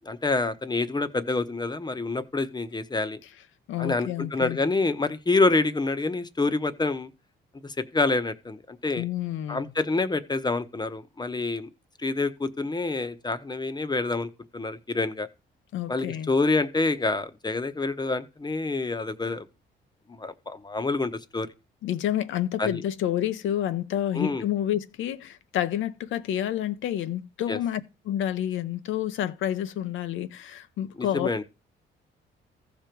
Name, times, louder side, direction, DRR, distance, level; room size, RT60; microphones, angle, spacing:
voice 1, 0.1-3.2 3.8-7.1 7.6-9.0 9.5-11.7 12.0-15.3 15.9-19.5 20.1-21.5 22.6-22.8 24.1-24.4 27.5-27.6 31.0-31.4, left 3 dB, 20° left, 0.9 m, -27 dB
voice 2, 3.7-4.6 9.0-9.7 15.7-16.3 21.8-31.4, left 11 dB, 80° left, 0.8 m, -29 dB
14.5 x 5.2 x 4.6 m
cardioid pair, 90°, 20 cm